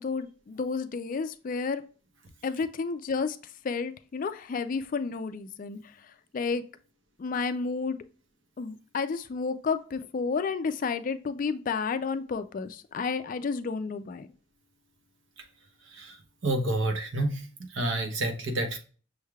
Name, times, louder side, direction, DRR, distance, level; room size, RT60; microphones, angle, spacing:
voice 1, 0.0-1.8 2.4-3.4 3.6-5.8 6.3-6.6 7.2-8.0 8.6-14.3, left 5 dB, 40° left, 11 dB, 0.3 m, -31 dB
voice 2, 16.4-17.5 17.7-18.8, right 1 dB, 65° right, 5 dB, 0.9 m, -29 dB
6.3 x 3.2 x 2.3 m, 0.38 s
head